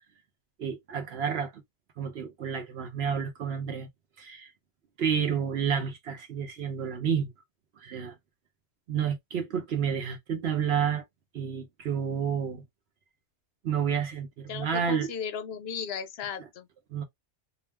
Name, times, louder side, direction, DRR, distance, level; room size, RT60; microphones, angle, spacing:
voice 1, 0.6-1.6 2.0-3.9 4.2-4.5 5.0-7.3 7.8-8.2 8.9-11.0 11.3-12.6 13.6-15.1 16.9-17.0, right 7 dB, 65° right, 0.9 m, -30 dB
voice 2, 14.5-16.7, left 7 dB, 65° left, 0.7 m, -36 dB
2.4 x 2.2 x 3.2 m
omnidirectional pair, 1.2 m